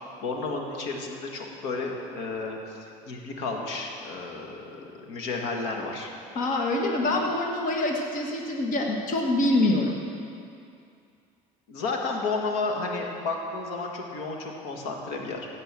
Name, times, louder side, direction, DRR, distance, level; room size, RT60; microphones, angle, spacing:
voice 1, 0.2-2.8 3.0-6.1 11.7-15.5, left 3 dB, 80° left, 1 dB, 1.8 m, -32 dB
voice 2, 6.3-9.9, left 2 dB, 50° left, 0 dB, 1.6 m, -25 dB
16.0 x 5.4 x 7.5 m, 2.4 s
supercardioid pair, 90°, 17 cm